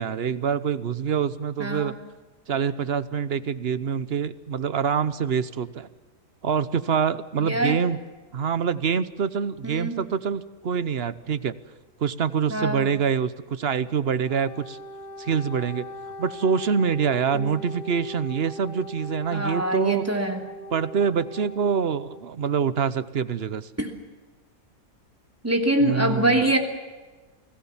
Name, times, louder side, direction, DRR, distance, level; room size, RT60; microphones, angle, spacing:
voice 1, 0.0-1.9 2.5-5.9 6.4-8.0 8.3-11.5 12.0-14.8 15.2-15.8 16.2-20.0 20.7-23.7 25.8-26.4, right 7 dB, 50° right, 15 dB, 1.0 m, -25 dB
voice 2, 1.6-1.9 7.4-7.8 9.6-10.0 12.5-12.9 17.3-17.6 19.3-20.5 23.8-23.9 25.4-26.6, right 1 dB, 10° right, 3 dB, 2.9 m, -24 dB
Wind instrument woodwind instrument, 14.2-22.2, right 1 dB, 30° left, 2.6 m, -40 dB
29.0 x 19.0 x 7.3 m, 1.3 s
omnidirectional pair, 1.6 m